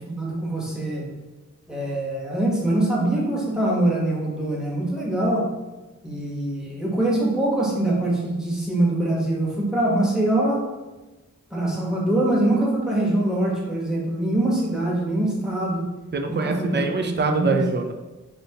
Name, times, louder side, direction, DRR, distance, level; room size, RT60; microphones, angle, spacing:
voice 1, 0.1-1.1 1.7-5.5 6.0-10.6 11.5-15.9 16.3-16.8 17.3-17.6, right 1 dB, ahead, -5 dB, 0.9 m, -23 dB
voice 2, 16.1-17.9, right 4 dB, 35° right, 4 dB, 0.4 m, -24 dB
3.3 x 2.7 x 2.8 m, 1.1 s
wide cardioid pair, 40°, 31 cm